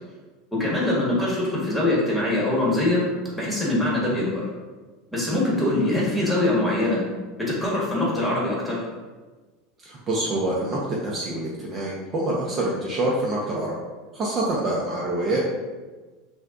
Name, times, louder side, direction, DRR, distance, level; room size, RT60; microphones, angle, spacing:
voice 1, 0.5-3.0 3.3-4.4 5.1-7.0 7.5-8.8, left 1 dB, 5° left, -6 dB, 1.4 m, -23 dB
voice 2, 9.8-13.7 14.1-15.4, right 1 dB, 30° right, -4 dB, 0.7 m, -26 dB
6.1 x 2.3 x 2.5 m, 1.3 s
supercardioid pair, 130°, 0 cm